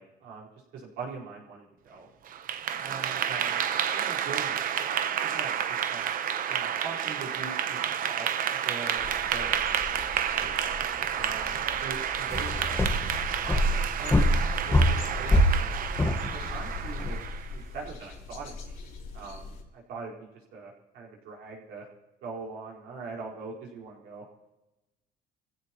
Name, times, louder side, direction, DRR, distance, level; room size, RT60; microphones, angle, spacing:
voice 1, 0.0-2.1 2.8-4.9 5.2-6.1 6.5-9.0 9.3-9.9 10.3-10.5 11.1-12.9 13.4-15.7 16.3-17.2 17.5-18.8 19.1-21.9 22.2-24.2, right 4 dB, 80° right, -3 dB, 4.6 m, -42 dB
Clapping / Applause, 2.3-17.5, right 9 dB, 55° right, 0.9 m, -30 dB
sound 1, 9.0-19.6, left 3 dB, 55° left, 3.1 m, -43 dB
sound 2, 12.3-17.2, equal, 15° left, 1.3 m, -25 dB
24.5 x 16.0 x 3.0 m, 0.99 s
cardioid pair, 110°, 17 cm